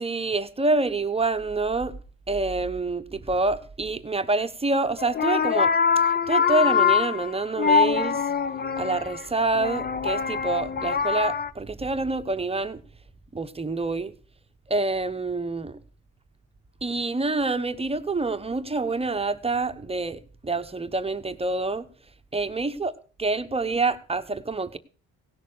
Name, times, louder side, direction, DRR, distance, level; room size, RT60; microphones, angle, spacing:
voice 1, 0.0-1.9 2.3-5.7 6.3-8.2 8.8-12.8 13.3-14.1 14.7-15.8 16.8-21.9 22.3-22.9 23.2-24.8, right 3 dB, 20° right, 1.0 m, -27 dB
sound 1, 5.0-11.5, left 6 dB, 30° left, 0.8 m, -24 dB
17.5 x 6.6 x 6.6 m
cardioid pair, 90°, 30 cm